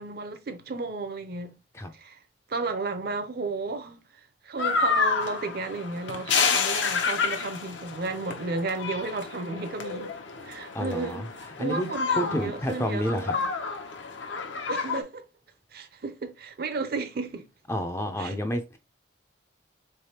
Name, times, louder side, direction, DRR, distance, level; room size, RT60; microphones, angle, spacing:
voice 1, 0.0-1.5 1.9-2.2 2.5-4.0 4.4-10.2 10.4-11.3 11.6-13.4 14.7-15.2 15.7-17.5 18.2-18.3, right 3 dB, 50° right, 0.5 m, -33 dB
sound 1, 4.6-15.0, left 5 dB, 70° left, 0.7 m, -29 dB
voice 2, 10.7-11.3 11.6-11.9 12.2-13.3 17.7-18.8, equal, 15° left, 0.4 m, -29 dB
3.9 x 3.3 x 2.8 m
head